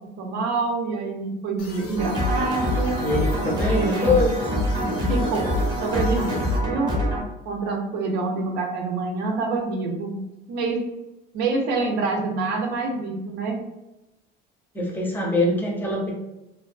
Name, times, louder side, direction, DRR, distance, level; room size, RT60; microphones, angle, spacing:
voice 1, 0.2-3.0 3.6-4.2 5.1-7.0 7.5-10.2 10.5-10.8 11.3-13.6, right 3 dB, 70° right, 2 dB, 0.6 m, -26 dB
sound 1, 1.6-6.6, left 3 dB, 70° left, 0.6 m, -40 dB
sound 2, 2.0-7.2, equal, 25° right, 0.7 m, -25 dB
voice 2, 3.0-4.4 4.6-5.1 14.7-16.1, left 2 dB, 10° left, -2 dB, 0.6 m, -24 dB
2.4 x 2.2 x 2.4 m, 0.96 s
cardioid pair, 135°, 19 cm